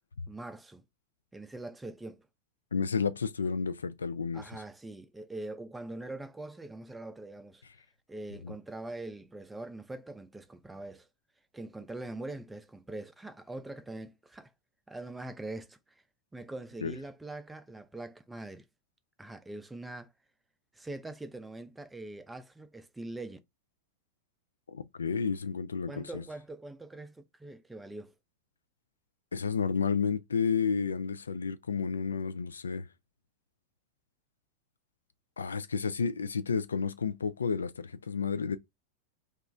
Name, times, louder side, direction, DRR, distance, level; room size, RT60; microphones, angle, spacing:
voice 1, 0.3-0.8 1.3-2.3 4.3-7.6 8.1-11.1 11.5-14.5 14.9-16.0 16.3-18.6 19.2-20.1 20.7-23.4 25.9-28.1, right 2 dB, 10° right, 0.4 m, -43 dB
voice 2, 2.7-4.4 8.4-8.5 16.8-16.9 24.7-26.2 29.3-32.9 35.4-38.6, left 5 dB, 70° left, 0.3 m, -31 dB
2.9 x 2.3 x 3.6 m
figure-of-eight pair, 90°, 0 cm